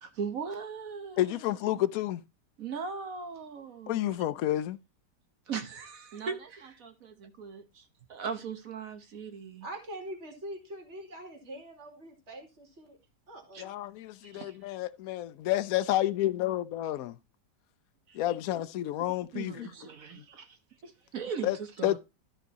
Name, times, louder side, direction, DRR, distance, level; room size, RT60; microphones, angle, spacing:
voice 1, 0.0-1.4 2.6-4.2 5.5-9.7 13.5-13.7 14.2-14.6 18.1-18.2 19.3-20.6 20.8-22.0, right 6 dB, 55° right, 1.3 m, -39 dB
voice 2, 1.2-2.2 3.9-4.8 13.6-17.2 18.1-19.7 20.2-20.3 21.4-21.6 21.8-22.0, left 14 dB, 65° left, 0.9 m, -30 dB
voice 3, 9.6-13.0 13.3-13.7 18.2-18.7, right 1 dB, 40° right, 2.6 m, -44 dB
13.0 x 4.6 x 4.1 m
omnidirectional pair, 1.9 m